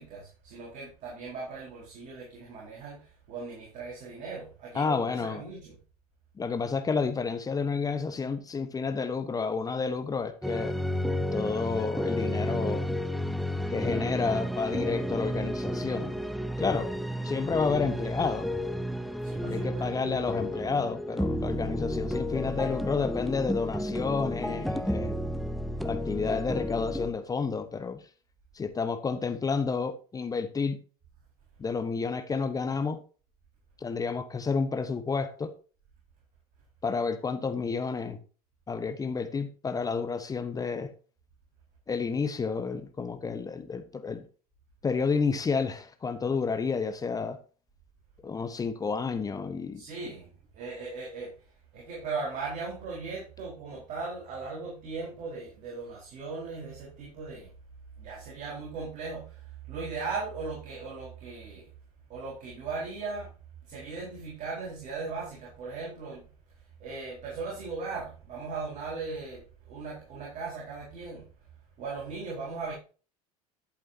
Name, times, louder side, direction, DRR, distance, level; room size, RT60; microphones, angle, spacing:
voice 1, 0.0-5.8 16.7-16.8 19.2-20.2 49.7-51.3 51.7-57.5 58.0-61.7 62.1-63.3 63.7-66.3 66.8-71.3 71.8-72.7, right 4 dB, 40° right, 4.3 m, -38 dB
voice 2, 4.7-5.4 6.4-10.7 11.3-12.9 13.7-16.2 16.6-16.9 17.2-18.5 19.5-25.1 25.8-28.0 28.5-30.8 31.6-33.0 33.8-35.5 36.8-38.2 38.7-40.9 41.9-44.3 44.8-47.4 48.2-49.8, left 5 dB, 20° left, 1.0 m, -30 dB
sound 1, 10.4-27.1, equal, ahead, 0.7 m, -32 dB
11.0 x 8.5 x 2.8 m
figure-of-eight pair, 75°, 20 cm